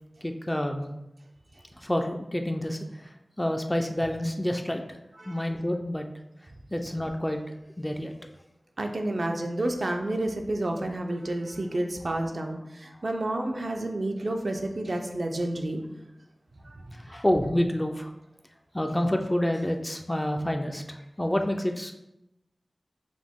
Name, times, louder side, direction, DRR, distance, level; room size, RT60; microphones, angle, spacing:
voice 1, 0.2-0.9 1.8-5.0 5.2-6.1 6.7-8.1 12.8-13.0 16.9-18.1 18.7-21.9, left 1 dB, 15° left, 4 dB, 0.3 m, -28 dB
voice 2, 8.8-15.8 16.6-17.0, right 1 dB, 60° right, 4 dB, 0.4 m, -30 dB
4.9 x 2.1 x 3.5 m, 0.90 s
wide cardioid pair, 75°, 0 cm